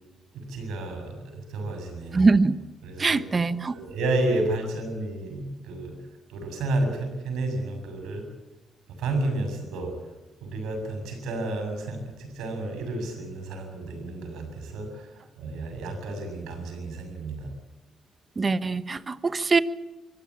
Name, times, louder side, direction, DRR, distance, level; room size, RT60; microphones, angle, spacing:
voice 1, 0.3-2.3 2.8-3.2 3.7-6.0 6.3-8.3 9.0-9.9 10.4-17.5, right 2 dB, 85° right, 5 dB, 7.2 m, -31 dB
voice 2, 2.1-2.6 3.0-3.7 18.4-19.6, right 4 dB, 30° right, 14 dB, 1.1 m, -22 dB
24.5 x 16.0 x 8.7 m, 1.1 s
cardioid pair, 90°, 0 cm